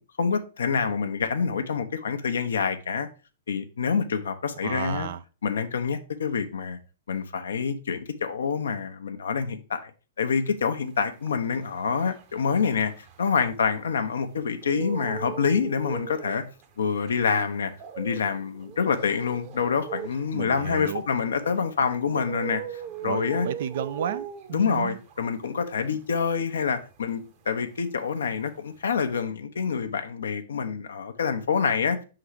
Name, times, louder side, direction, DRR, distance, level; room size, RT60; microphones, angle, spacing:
voice 1, 0.2-3.1 3.5-5.1 5.4-6.8 7.1-9.9 10.2-12.9 13.2-16.4 16.8-17.7 18.0-23.5 24.5-32.0, left 6 dB, 75° left, 0.8 m, -27 dB
voice 2, 4.6-5.2 20.3-21.0 23.0-25.0, right 9 dB, 60° right, 0.5 m, -32 dB
sound 1, 10.8-14.1 14.4-27.8 28.1-29.2, right 8 dB, 40° right, 1.0 m, -40 dB
5.6 x 3.8 x 4.7 m
hypercardioid pair, 110°, 0 cm